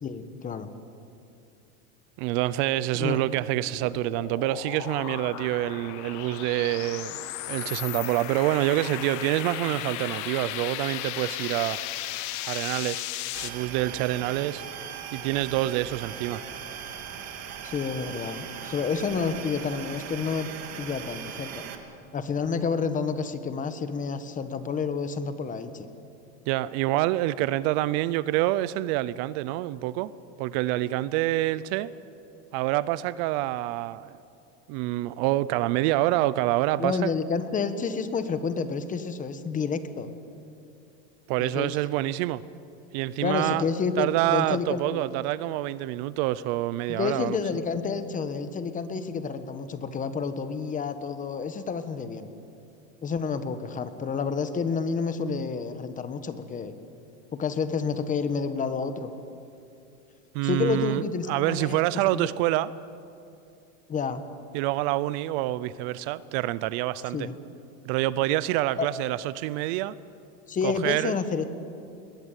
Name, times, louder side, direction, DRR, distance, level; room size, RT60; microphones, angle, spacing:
voice 1, 0.0-0.7 3.0-3.2 17.6-20.5 20.8-21.6 22.1-25.9 36.8-40.1 41.4-41.8 43.2-45.0 46.9-52.3 53.0-56.7 57.3-59.1 60.4-61.8 62.1-62.3 63.9-64.2 67.1-67.3 68.8-68.9 70.5-71.4, left 5 dB, 20° left, 11 dB, 1.2 m, -29 dB
voice 2, 2.2-11.8 12.4-13.0 13.4-14.6 15.1-16.4 26.5-30.1 30.4-31.9 32.5-34.2 34.7-37.1 41.3-42.4 42.9-43.6 44.0-47.4 60.3-62.7 64.5-67.3 67.8-70.0 70.6-71.1, right 16 dB, 55° right, 18 dB, 0.7 m, -27 dB
sound 1, 3.2-13.5, left 14 dB, 50° left, 1.3 m, -36 dB
sound 2, 13.3-21.7, right 8 dB, 40° right, 2.5 m, -39 dB
21.0 x 21.0 x 9.1 m, 2.6 s
supercardioid pair, 150°, 38 cm